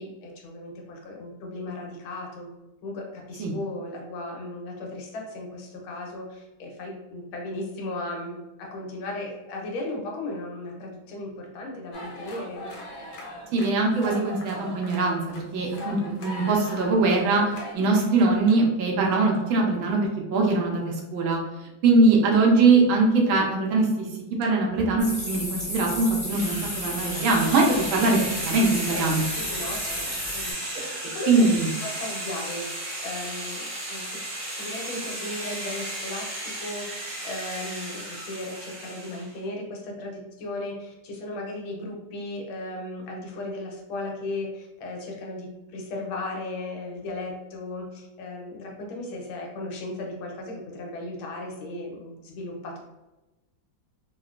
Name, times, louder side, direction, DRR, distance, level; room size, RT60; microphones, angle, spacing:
voice 1, 0.0-2.5 2.8-12.7 28.9-31.5 31.8-32.7 33.0-34.2 34.5-52.8, left 2 dB, 85° left, 0 dB, 1.5 m, -36 dB
sound 1, 11.9-17.7, left 1 dB, 65° left, 0.9 m, -40 dB
voice 2, 13.5-15.2 15.5-17.4 17.7-21.4 21.8-24.1 24.4-28.2 28.5-29.2 31.3-31.7, right 3 dB, 85° right, -1 dB, 1.5 m, -21 dB
sound 2, 25.0-30.5, left 1 dB, 10° left, 0.4 m, -33 dB
sound 3, 26.3-39.3, right 1 dB, 50° right, 0.6 m, -34 dB
3.9 x 2.1 x 2.4 m, 1.0 s
omnidirectional pair, 2.2 m